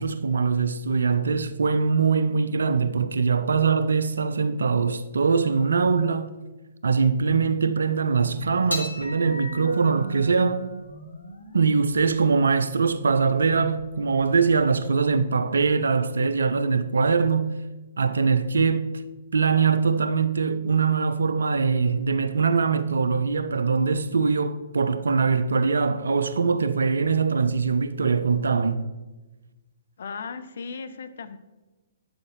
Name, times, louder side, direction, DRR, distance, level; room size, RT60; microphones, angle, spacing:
voice 1, 0.0-6.3 6.8-10.7 11.5-17.6 18.0-18.9 19.3-28.9, right 5 dB, 65° right, 0.4 m, -22 dB
sound 1, 8.7-15.2, right 1 dB, 80° left, 1.2 m, -38 dB
voice 2, 30.0-31.4, left 5 dB, 55° left, 0.4 m, -36 dB
8.4 x 6.5 x 2.5 m
figure-of-eight pair, 120°, 0 cm